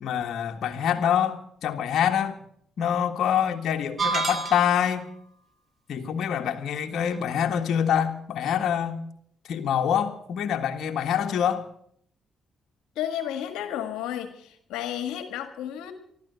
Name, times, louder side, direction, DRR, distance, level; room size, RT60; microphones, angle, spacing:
voice 1, 0.0-2.4 2.8-5.1 5.9-9.0 9.5-11.7, left 9 dB, 70° left, 4 dB, 1.7 m, -25 dB
sound 1, 4.0-5.0, right 4 dB, 40° right, 2.9 m, -28 dB
voice 2, 12.9-15.9, left 10 dB, 85° left, 8 dB, 1.6 m, -32 dB
14.0 x 13.0 x 8.1 m, 0.66 s
supercardioid pair, 60°, 0 cm